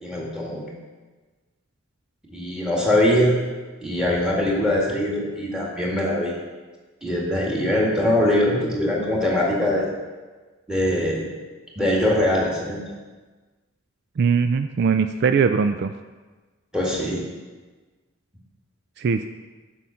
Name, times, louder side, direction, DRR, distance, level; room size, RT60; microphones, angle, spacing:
voice 1, 0.0-0.6 2.3-3.3 3.8-6.3 7.0-9.9 10.7-11.3 11.8-12.8 16.7-17.2, left 1 dB, 5° right, -3 dB, 1.9 m, -22 dB
voice 2, 14.2-15.9 19.0-19.3, right 5 dB, 55° right, 9 dB, 0.3 m, -20 dB
7.9 x 6.2 x 5.7 m, 1.3 s
head